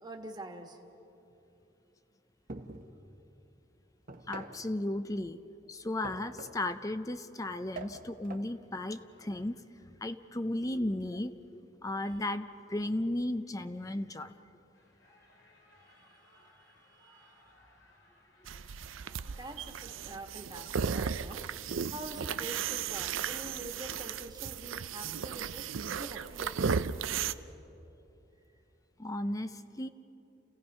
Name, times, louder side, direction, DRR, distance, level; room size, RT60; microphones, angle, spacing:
voice 1, 0.0-0.8 16.0-17.4 19.4-21.4 21.9-26.7, right 1 dB, 20° right, 2 dB, 1.6 m, -46 dB
sound 1, 2.5-3.0 4.1-4.7 6.0-6.7 7.7-8.5, right 2 dB, 45° right, 1.1 m, -45 dB
voice 2, 4.3-5.4 5.7-9.6 10.0-14.3 29.0-29.9, left 1 dB, 15° left, 10 dB, 0.5 m, -35 dB
sound 2, 14.7-19.7, left 1 dB, 85° left, 3.2 m, -63 dB
sound 3, 18.5-27.3, right 6 dB, 90° right, 0.5 m, -35 dB
29.5 x 16.5 x 5.5 m, 2.9 s
head